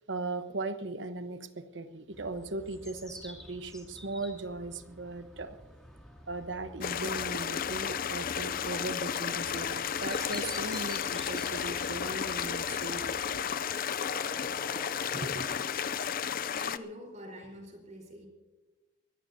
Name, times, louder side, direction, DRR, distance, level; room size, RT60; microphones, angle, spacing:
voice 1, 0.1-5.6 6.3-13.4 15.1-15.5, right 2 dB, 65° right, 1.1 m, -38 dB
sound 1, 2.1-13.6, equal, 5° left, 2.5 m, -50 dB
sound 2, 6.8-16.8, left 8 dB, 45° left, 0.5 m, -33 dB
sound 3, 9.4-16.0, left 2 dB, 20° left, 6.2 m, -49 dB
voice 2, 16.6-18.3, equal, 40° right, 4.3 m, -45 dB
23.5 x 17.5 x 2.8 m
head